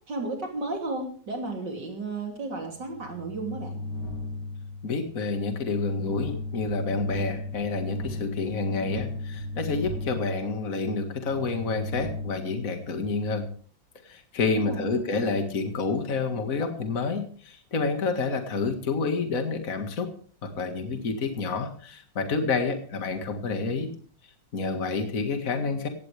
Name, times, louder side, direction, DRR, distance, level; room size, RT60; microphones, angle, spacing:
voice 1, 0.1-3.8 14.5-15.1, right 3 dB, 70° right, 2 dB, 3.6 m, -33 dB
sound 1, 2.7-13.3, left 2 dB, 65° left, 6.0 m, -36 dB
voice 2, 4.8-13.5 14.1-20.1 20.4-23.9 24.5-25.9, left 4 dB, 50° left, 6 dB, 2.2 m, -29 dB
17.0 x 16.5 x 3.4 m, 0.43 s
omnidirectional pair, 2.0 m